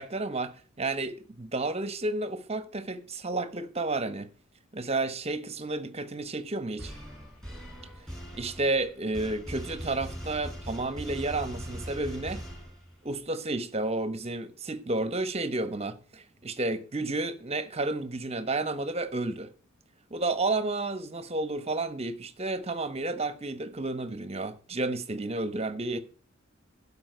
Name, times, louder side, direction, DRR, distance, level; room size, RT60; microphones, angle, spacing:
voice 1, 0.0-4.3 4.7-6.9 8.0-8.1 8.3-12.4 13.0-19.5 20.1-26.0, right 2 dB, 30° right, 1.1 m, -31 dB
sound 1, 6.8-13.1, equal, 5° left, 5.8 m, -41 dB
12.0 x 5.6 x 7.9 m
head